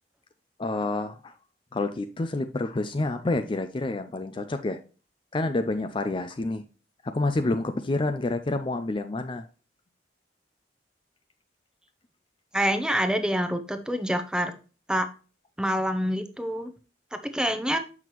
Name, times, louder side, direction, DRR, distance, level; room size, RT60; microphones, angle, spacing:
voice 1, 0.6-1.3 1.7-4.8 5.3-6.6 7.0-9.5, left 2 dB, 30° left, 0.4 m, -28 dB
voice 2, 12.5-14.5 14.9-15.1 15.6-16.7 17.1-17.8, equal, 5° right, 0.7 m, -26 dB
7.2 x 5.9 x 3.0 m
head